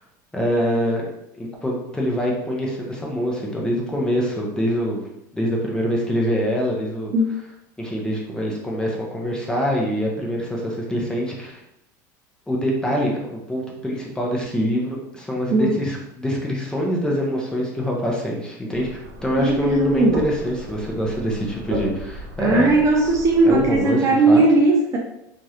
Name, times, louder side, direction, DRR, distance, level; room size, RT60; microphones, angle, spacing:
voice 1, 0.3-1.1 1.3-5.0 5.3-7.1 7.8-11.6 12.5-22.7 23.4-24.4, equal, 10° left, -2 dB, 0.7 m, -24 dB
sound 1, 18.7-23.8, right 1 dB, 70° right, 0.8 m, -35 dB
voice 2, 19.4-20.2 22.4-25.0, right 2 dB, 30° right, 0 dB, 0.4 m, -17 dB
3.0 x 2.5 x 2.8 m, 0.83 s
supercardioid pair, 125°, 10 cm